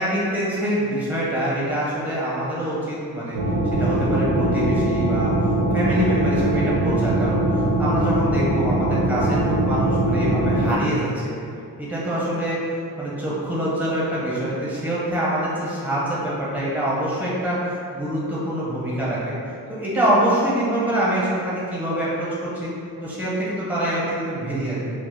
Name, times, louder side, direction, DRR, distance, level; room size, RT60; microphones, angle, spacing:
voice 1, 0.0-3.4 3.7-5.3 5.7-11.3 11.8-12.6 13.0-19.4 19.7-22.7 23.0-25.0, right 1 dB, 5° right, -8 dB, 0.7 m, -25 dB
sound 1, 3.3-10.7, right 1 dB, 55° right, 0.5 m, -21 dB
2.1 x 2.0 x 3.2 m, 2.4 s
cardioid pair, 110°, 40 cm